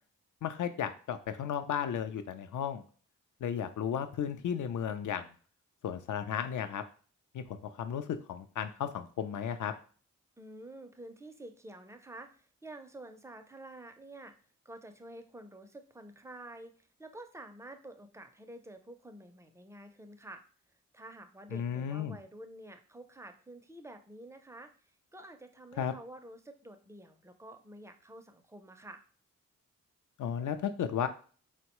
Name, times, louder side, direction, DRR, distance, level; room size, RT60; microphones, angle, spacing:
voice 1, 0.4-2.8 3.4-5.3 5.8-6.8 7.3-9.7 21.5-22.2 25.8-25.9 30.2-31.1, left 8 dB, 65° left, 10 dB, 0.5 m, -34 dB
voice 2, 10.4-14.3 14.6-20.4 20.9-24.7 25.1-29.0, right 1 dB, 10° right, 7 dB, 0.4 m, -49 dB
3.7 x 2.2 x 2.9 m, 0.41 s
cardioid pair, 55°, 33 cm